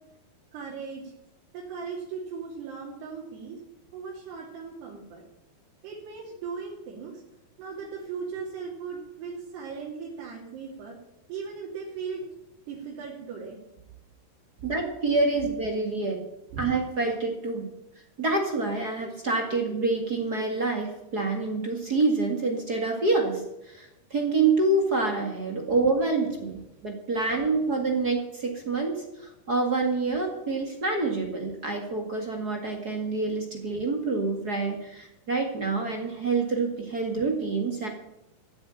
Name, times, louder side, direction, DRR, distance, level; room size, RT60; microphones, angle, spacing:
voice 1, 0.5-1.0 1.5-3.6 3.9-5.2 5.8-7.2 7.6-11.0 11.3-12.2 12.7-13.6 16.5-16.7 26.2-26.6 27.2-27.7, right 5 dB, 90° right, -5 dB, 4.8 m, -38 dB
voice 2, 14.6-16.2 16.6-17.7 18.2-37.9, right 3 dB, 35° right, 2 dB, 1.7 m, -27 dB
15.0 x 8.1 x 8.9 m, 0.88 s
omnidirectional pair, 4.6 m